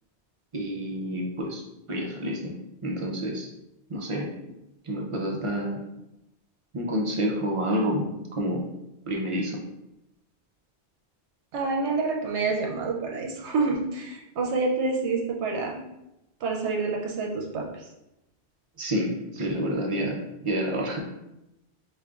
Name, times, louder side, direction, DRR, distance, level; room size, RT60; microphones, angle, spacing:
voice 1, 0.5-1.6 1.9-2.5 2.8-3.5 3.9-4.3 4.9-5.8 6.7-8.6 9.1-9.6 18.8-21.0, equal, 40° right, -1 dB, 0.5 m, -28 dB
voice 2, 11.5-15.8 16.4-17.8, right 3 dB, 80° right, 0 dB, 0.9 m, -28 dB
5.0 x 2.4 x 2.3 m, 0.89 s
omnidirectional pair, 1.1 m